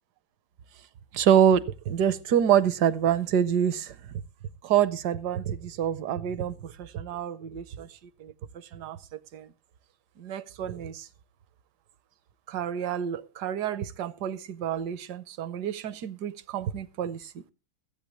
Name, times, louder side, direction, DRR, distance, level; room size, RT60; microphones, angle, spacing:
voice 1, 1.1-4.0 4.6-7.9 8.2-9.5 10.2-11.1 12.5-17.4, right 9 dB, 65° right, 1.2 m, -27 dB
21.5 x 8.7 x 3.0 m
omnidirectional pair, 2.1 m